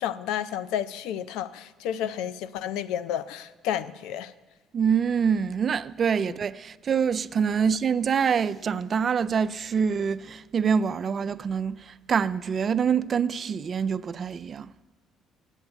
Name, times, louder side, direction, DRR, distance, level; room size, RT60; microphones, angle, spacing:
voice 1, 0.0-4.3, left 10 dB, 85° left, 0.4 m, -31 dB
voice 2, 4.7-14.7, right 6 dB, 40° right, 0.3 m, -25 dB
9.7 x 8.1 x 8.1 m
cardioid pair, 95°, 0 cm